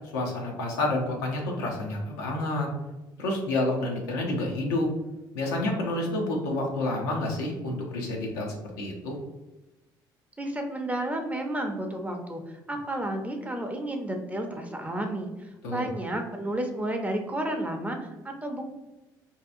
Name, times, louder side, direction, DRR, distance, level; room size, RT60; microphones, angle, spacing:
voice 1, 0.1-2.7 3.2-4.9 5.3-9.2 15.6-15.9, left 2 dB, 80° left, 0 dB, 0.6 m, -29 dB
voice 2, 10.4-12.4 12.7-18.6, right 1 dB, 15° right, 3 dB, 0.5 m, -31 dB
2.7 x 2.3 x 2.5 m, 1.0 s
hypercardioid pair, 55°, 11 cm